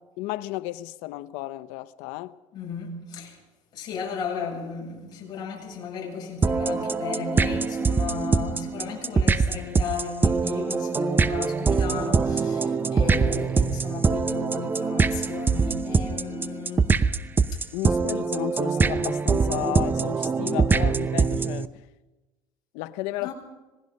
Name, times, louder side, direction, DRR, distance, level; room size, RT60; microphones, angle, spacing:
voice 1, 0.2-2.4 17.7-21.7 22.7-23.3, left 17 dB, 85° left, 0.9 m, -33 dB
voice 2, 2.5-3.4 3.7-16.9 17.5-17.7 23.2-23.3, left 6 dB, 40° left, 7.9 m, -35 dB
sound 1, 6.4-21.7, right 4 dB, 20° right, 0.7 m, -23 dB
26.5 x 19.0 x 5.4 m
cardioid pair, 135°, 11 cm